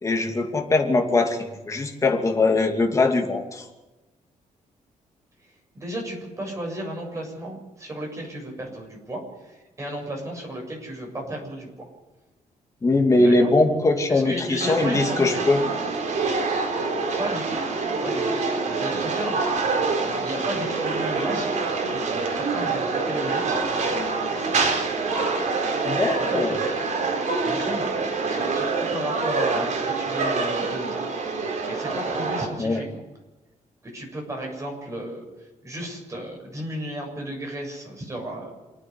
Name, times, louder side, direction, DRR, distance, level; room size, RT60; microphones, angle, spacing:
voice 1, 0.0-3.6 12.8-15.6 25.8-26.5 32.6-32.8, left 2 dB, 25° left, 2 dB, 2.8 m, -21 dB
voice 2, 5.7-11.7 13.1-13.5 14.1-15.4 17.2-17.6 18.0-18.4 18.8-19.5 20.1-23.6 26.0-26.8 27.4-31.0 31.3-33.0 33.9-35.2 35.6-38.5, right 1 dB, 20° right, 0 dB, 7.4 m, -34 dB
sound 1, 14.6-32.5, right 4 dB, 65° right, 4.1 m, -26 dB
28.0 x 9.6 x 9.6 m, 1.1 s
cardioid pair, 145°, 14 cm